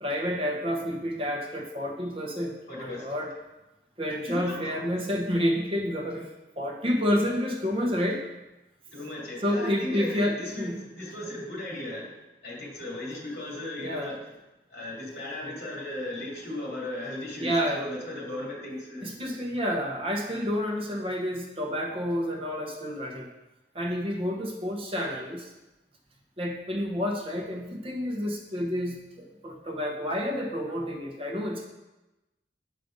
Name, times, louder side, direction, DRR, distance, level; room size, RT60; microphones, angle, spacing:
voice 1, 0.0-3.3 4.0-6.3 6.6-8.2 9.4-10.8 13.8-14.1 17.4-17.8 19.0-23.3 23.7-25.5 26.4-29.0 29.4-31.7, equal, 30° right, 1 dB, 1.0 m, -29 dB
voice 2, 2.7-3.1 4.3-4.7 8.9-12.2 12.4-14.2 14.7-19.2, left 1 dB, 65° left, -3 dB, 2.6 m, -36 dB
7.5 x 5.3 x 5.2 m, 1.0 s
head